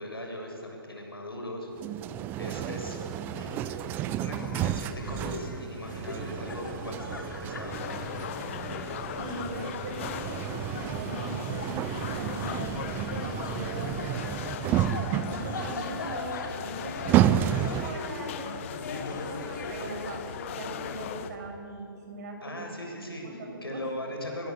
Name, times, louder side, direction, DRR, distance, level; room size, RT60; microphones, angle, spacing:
voice 1, 0.0-1.7 2.4-3.0 3.3-3.6 4.2-8.1 22.4-24.5, left 1 dB, 85° left, 2 dB, 7.5 m, -39 dB
sound 1, 1.8-18.2, right 12 dB, 15° right, 0.6 m, -31 dB
sound 2, 2.8-21.4, left 3 dB, 55° left, 4.6 m, -41 dB
sound 3, 7.7-21.3, left 11 dB, 35° left, 1.0 m, -39 dB
voice 2, 9.1-14.7 15.2-17.5 17.8-22.6 22.9-24.1, right 2 dB, 45° right, 2 dB, 6.9 m, -41 dB
28.5 x 22.0 x 8.3 m, 2.6 s
figure-of-eight pair, 140°, 12 cm